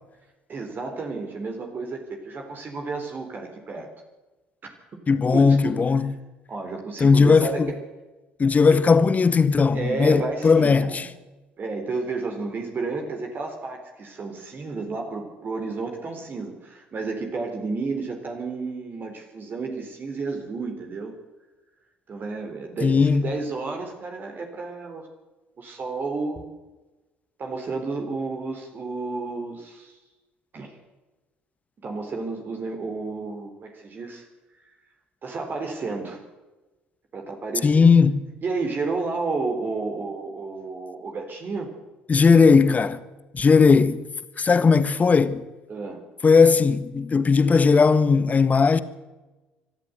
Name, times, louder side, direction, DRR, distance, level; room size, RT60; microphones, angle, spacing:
voice 1, 0.5-3.9 5.3-5.4 5.7-5.8 6.5-7.8 8.7-8.8 9.7-11.1 11.6-21.1 22.1-25.1 25.6-26.4 27.4-29.9 30.5-30.8 31.8-34.3 35.2-36.2 37.1-37.9 38.4-41.7 45.7-46.0, right 3 dB, 40° right, 4.0 m, -31 dB
voice 2, 5.1-6.1 7.0-7.7 8.4-11.1 22.8-23.3 37.6-38.3 42.1-43.0 43.3-44.0 44.4-45.4 46.2-48.8, left 5 dB, 30° left, 1.5 m, -17 dB
25.0 x 13.0 x 8.1 m
figure-of-eight pair, 55°, 5 cm